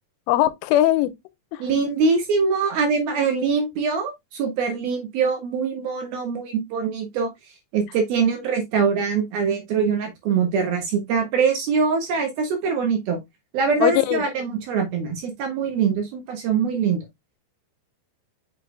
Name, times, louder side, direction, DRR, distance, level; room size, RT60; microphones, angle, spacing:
voice 1, 0.3-1.1 1.5-1.6 13.8-14.2, left 14 dB, 85° left, 3.2 m, -20 dB
voice 2, 1.6-7.3 7.7-13.2 13.5-17.0, right 5 dB, 65° right, 2.9 m, -23 dB
6.8 x 6.7 x 2.2 m
omnidirectional pair, 5.5 m